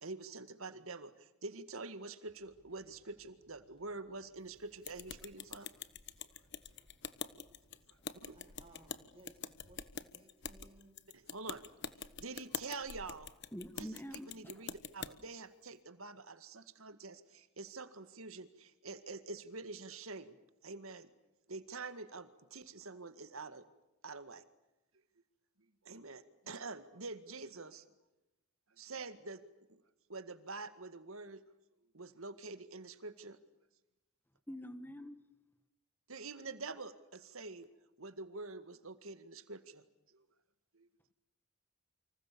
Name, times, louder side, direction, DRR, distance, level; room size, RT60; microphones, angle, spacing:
voice 1, 0.0-5.7 7.9-8.4 11.1-11.6 12.2-13.3 13.8-20.4 20.6-21.1 21.5-23.6 24.0-24.4 25.8-27.8 28.8-29.4 30.1-31.4 31.9-33.4 36.1-37.7 38.0-39.8 40.1-40.2 40.7-41.1, right 3 dB, 70° right, 2.0 m, -46 dB
sound 1, 2.2-9.9, right 1 dB, 25° left, 6.6 m, -72 dB
sound 2, 4.8-15.1, left 7 dB, 50° left, 1.2 m, -46 dB
voice 2, 8.3-11.0, right 1 dB, 25° right, 4.4 m, -62 dB
voice 3, 13.5-14.3 34.5-35.2, equal, 10° left, 1.5 m, -45 dB
29.0 x 26.0 x 6.9 m
head